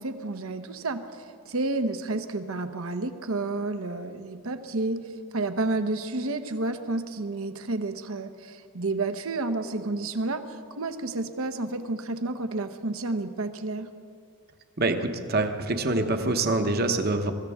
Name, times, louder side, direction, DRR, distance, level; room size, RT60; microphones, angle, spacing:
voice 1, 0.0-5.0 5.3-13.9, right 2 dB, 70° right, 9 dB, 0.9 m, -30 dB
voice 2, 14.8-17.3, right 2 dB, 45° right, 6 dB, 1.0 m, -25 dB
23.5 x 15.0 x 3.6 m, 2.5 s
head